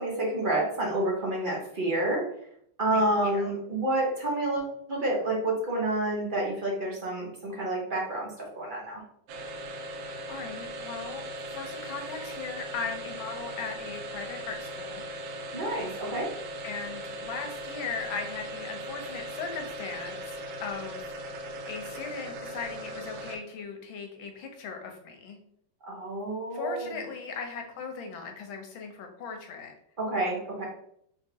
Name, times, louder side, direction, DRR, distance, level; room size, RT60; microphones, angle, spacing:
voice 1, 0.0-2.2 2.8-9.0 15.5-16.3 25.8-26.9 30.0-30.6, right 1 dB, 40° right, -3 dB, 0.7 m, -29 dB
voice 2, 2.9-3.5 10.3-11.2 11.5-15.0 16.6-25.4 26.5-29.7, left 5 dB, 90° left, 4 dB, 1.6 m, -38 dB
Fear and Tension Build Up, 9.3-23.6, right 1 dB, 85° right, 1.5 m, -39 dB
3.6 x 3.6 x 2.7 m, 0.69 s
omnidirectional pair, 2.1 m